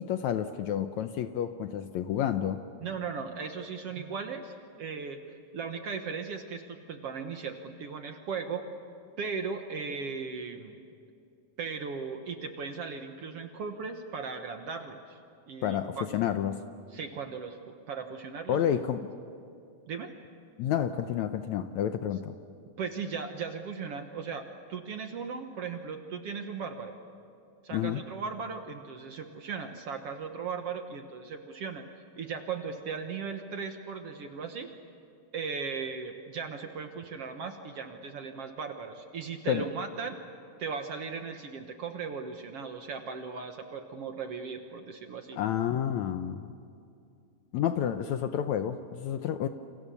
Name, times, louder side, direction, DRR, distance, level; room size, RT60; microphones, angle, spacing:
voice 1, 0.0-2.6 15.6-16.6 18.5-19.1 20.6-22.4 27.7-28.0 39.5-39.6 45.4-46.5 47.5-49.5, left 10 dB, 75° left, 9 dB, 1.8 m, -30 dB
voice 2, 2.8-8.7 9.2-10.8 11.6-15.2 15.5-16.1 16.9-17.6 17.9-18.6 19.9-20.1 22.8-27.0 27.6-34.7 35.3-40.2 40.6-45.4, right 5 dB, 55° right, 6 dB, 1.8 m, -37 dB
29.0 x 27.5 x 7.0 m, 2.6 s
omnidirectional pair, 3.8 m